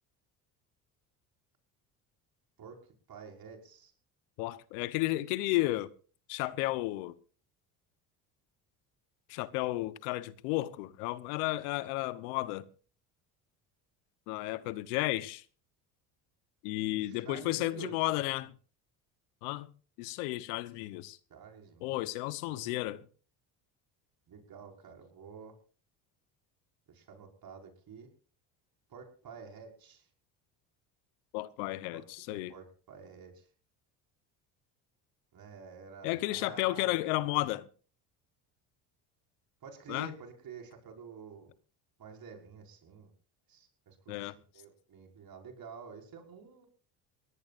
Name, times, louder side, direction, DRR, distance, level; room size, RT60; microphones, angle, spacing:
voice 1, 3.1-3.9 17.0-17.9 21.3-22.0 22.5-22.9 24.3-25.6 26.9-28.1 28.9-30.1 31.9-33.5 35.3-37.0 39.6-41.5 42.0-43.1 43.5-46.7, right 6 dB, 50° right, 5.8 m, -49 dB
voice 2, 4.4-5.9 6.3-7.2 9.3-12.7 14.3-15.4 16.6-18.5 19.4-19.7 20.0-21.2 21.8-23.0 31.3-32.5 36.0-37.7 39.9-40.1 44.1-44.3, left 18 dB, 80° left, 1.1 m, -33 dB
22.0 x 18.0 x 2.6 m
hypercardioid pair, 75°, 44 cm